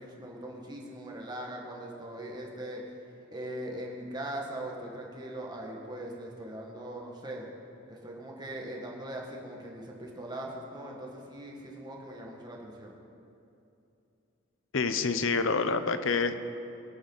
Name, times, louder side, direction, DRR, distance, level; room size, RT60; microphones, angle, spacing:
voice 1, 0.0-2.8 3.3-7.5 7.9-13.0, right 1 dB, 20° right, -2 dB, 1.9 m, -40 dB
voice 2, 14.7-16.3, left 4 dB, 70° left, 10 dB, 0.8 m, -27 dB
22.5 x 8.7 x 4.1 m, 2.7 s
head